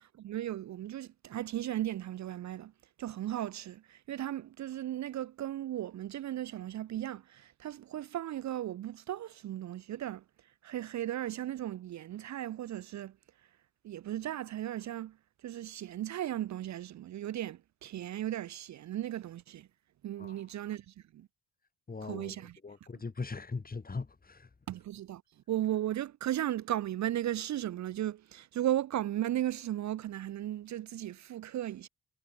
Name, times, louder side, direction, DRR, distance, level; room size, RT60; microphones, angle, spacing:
voice 1, 0.0-2.7 3.0-13.5 13.8-19.7 20.0-21.3 22.0-22.5 24.7-31.9, right 12 dB, 60° right, 0.6 m, -36 dB
voice 2, 21.9-22.4 22.6-24.5, left 4 dB, 25° left, 3.0 m, -40 dB
cardioid pair, 85°, 32 cm